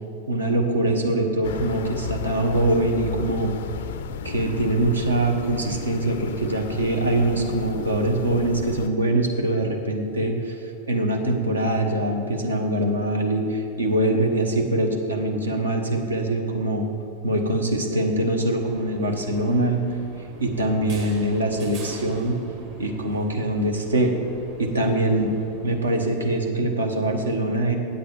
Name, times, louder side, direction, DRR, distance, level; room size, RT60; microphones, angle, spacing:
voice 1, 0.3-3.5 4.2-10.6 10.9-16.9 17.2-19.8 20.4-22.4 22.8-24.1 24.6-25.3 25.6-27.8, right 1 dB, 75° right, 3 dB, 1.0 m, -23 dB
sound 1, 1.4-8.9, left 8 dB, 55° left, 0.3 m, -34 dB
sound 2, 18.6-26.1, right 3 dB, 45° right, 1.6 m, -44 dB
8.2 x 7.9 x 5.1 m, 2.9 s
figure-of-eight pair, 90°, 0 cm